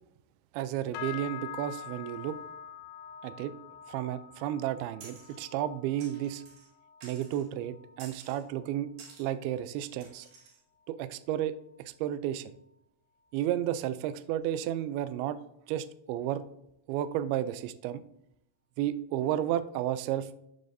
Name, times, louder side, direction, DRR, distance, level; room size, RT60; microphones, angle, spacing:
voice 1, 0.5-2.4 3.2-3.5 3.9-6.4 7.0-8.9 9.2-10.3 10.9-11.5 11.8-12.5 13.3-15.4 15.7-16.4 16.9-18.0 18.8-20.3, right 11 dB, 85° right, 13 dB, 2.2 m, -32 dB
sound 1, 0.9-10.5 10.8-11.2 11.6-12.0 12.5-12.6, left 9 dB, 90° left, 2.8 m, -46 dB
sound 2, 5.0-5.4 6.0-6.7 7.0-7.5 8.0-8.4 9.0-9.3 10.0-10.6, right 4 dB, 60° right, 3.3 m, -51 dB
13.5 x 6.6 x 2.7 m, 0.80 s
omnidirectional pair, 4.9 m